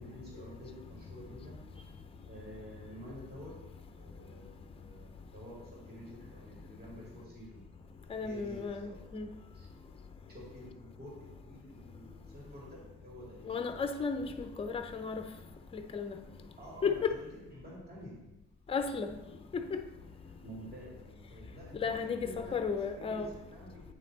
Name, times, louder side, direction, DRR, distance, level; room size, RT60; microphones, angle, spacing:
voice 1, 0.0-1.6 2.2-3.6 4.0-7.6 8.2-9.0 9.5-9.7 10.3-13.7 16.6-18.2 20.4-22.6 22.9-23.8, equal, 30° right, 2.2 m, -49 dB
voice 2, 8.1-9.3 13.5-15.2 15.7-16.2 16.8-17.1 18.7-19.2 19.5-19.8 21.8-23.3, left 5 dB, 20° left, 0.5 m, -34 dB
8.4 x 3.3 x 3.9 m
cardioid pair, 90°, 30 cm